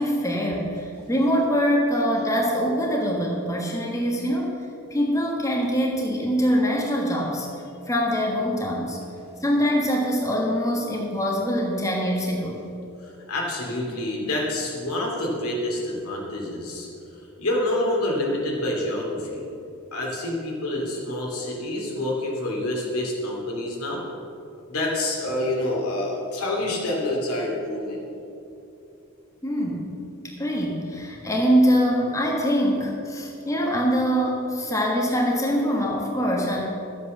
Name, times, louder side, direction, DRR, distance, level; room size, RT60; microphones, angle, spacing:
voice 1, 0.0-4.6 4.9-7.5 7.9-9.0 9.4-12.6 29.4-30.0 30.2-36.7, equal, 15° left, -2 dB, 1.5 m, -23 dB
voice 2, 13.0-16.9 17.4-19.4 19.9-24.0 24.7-28.0, left 1 dB, 80° left, -2 dB, 3.0 m, -27 dB
12.5 x 8.2 x 6.7 m, 2.7 s
head